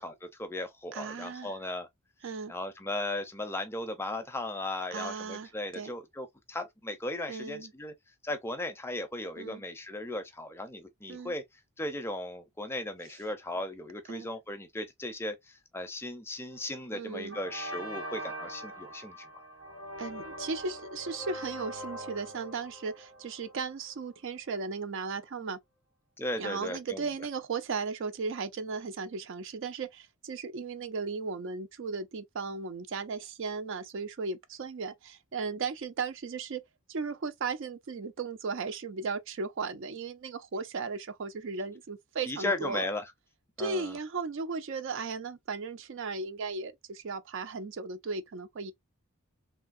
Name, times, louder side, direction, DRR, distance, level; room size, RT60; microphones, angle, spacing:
voice 1, 0.0-1.9 2.5-7.9 8.2-11.4 11.8-19.4 26.2-27.1 42.3-43.0 43.6-44.0, left 1 dB, 10° left, 0.4 m, -36 dB
voice 2, 0.9-1.5 2.2-2.5 4.9-5.9 7.3-7.7 9.4-9.6 11.1-11.3 14.1-14.3 16.9-17.4 20.0-25.6 26.4-36.6 36.9-42.9 43.6-48.7, right 4 dB, 55° right, 0.4 m, -36 dB
sound 1, 16.5-16.8 17.3-24.1, equal, 90° right, 2.5 m, -42 dB
3.2 x 2.6 x 2.4 m
head